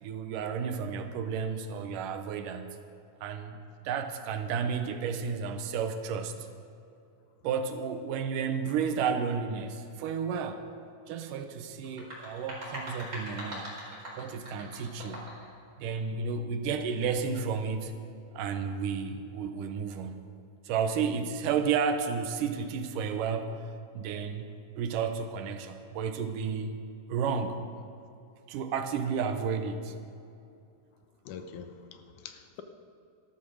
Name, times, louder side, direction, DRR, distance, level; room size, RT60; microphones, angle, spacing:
voice 1, 0.0-2.8 3.2-6.4 7.4-10.7 11.1-13.7 14.2-15.3 15.8-17.9 18.3-20.3 20.6-23.7 23.9-26.7 27.1-27.6 28.5-29.9, right 6 dB, 85° right, 7 dB, 2.5 m, -32 dB
sound 1, 11.8-15.5, equal, 25° right, 4.3 m, -41 dB
voice 2, 31.3-32.6, left 7 dB, 75° left, 8 dB, 2.2 m, -44 dB
13.5 x 12.0 x 6.3 m, 2.6 s
omnidirectional pair, 3.7 m